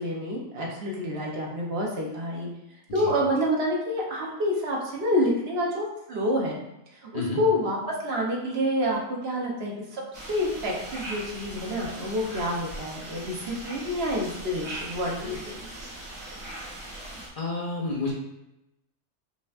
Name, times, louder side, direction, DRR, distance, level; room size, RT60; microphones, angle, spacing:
voice 1, 0.0-2.5 2.9-6.6 7.0-10.0 10.3-15.5, equal, 60° right, -2 dB, 1.0 m, -28 dB
sound 1, 10.1-17.3, right 1 dB, 80° right, 1.3 m, -40 dB
voice 2, 17.4-18.1, left 3 dB, 55° left, -2 dB, 0.7 m, -30 dB
5.1 x 2.8 x 2.4 m, 0.89 s
omnidirectional pair, 1.3 m